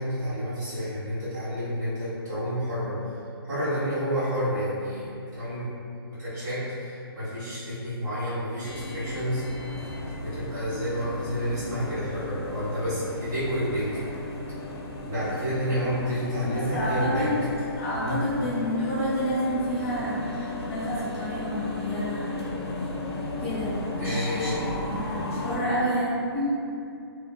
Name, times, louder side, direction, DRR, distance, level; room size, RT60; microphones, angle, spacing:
voice 1, 0.0-2.9 3.5-5.7 6.2-9.4 10.2-14.0 15.0-17.3 18.0-18.1 24.0-24.6, equal, 45° right, -14 dB, 1.4 m, -29 dB
sound 1, 8.6-25.6, left 2 dB, 85° left, 0.6 m, -35 dB
voice 2, 16.4-17.3 17.8-22.3 23.4-24.6 24.9-26.5, equal, 30° left, -9 dB, 1.0 m, -29 dB
2.5 x 2.5 x 2.2 m, 2.6 s
hypercardioid pair, 170°, 13 cm